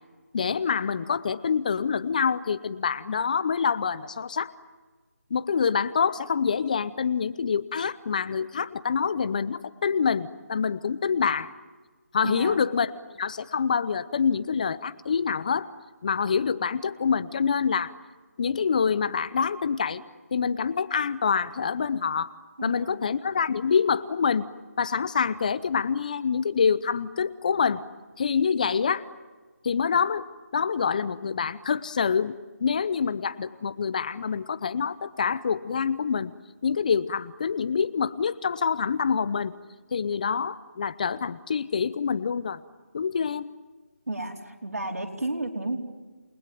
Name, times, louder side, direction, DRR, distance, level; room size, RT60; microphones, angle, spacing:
voice 1, 0.3-4.5 5.3-11.5 12.1-12.9 13.2-15.7 16.0-17.9 18.4-20.0 20.3-22.3 22.6-24.5 24.8-27.8 28.2-29.1 29.6-30.3 30.5-36.3 36.6-39.6 39.9-42.6 42.9-43.5, left 6 dB, 30° left, 16 dB, 0.8 m, -26 dB
voice 2, 12.2-12.6 22.6-23.1 44.1-45.8, right 2 dB, 85° right, 1 dB, 4.5 m, -32 dB
29.0 x 20.0 x 9.3 m, 1.3 s
figure-of-eight pair, 165°, 8 cm